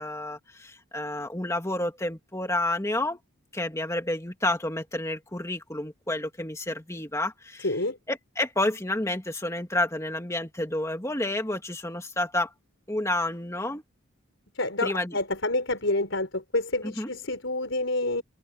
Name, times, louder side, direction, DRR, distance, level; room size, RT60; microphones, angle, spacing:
voice 1, 0.0-3.2 3.5-7.8 8.1-12.5 12.9-13.8 14.8-15.2 16.8-17.1, left 1 dB, 15° left, 2.1 m, -30 dB
voice 2, 7.6-8.0 14.5-18.2, left 2 dB, 65° left, 4.7 m, -28 dB
head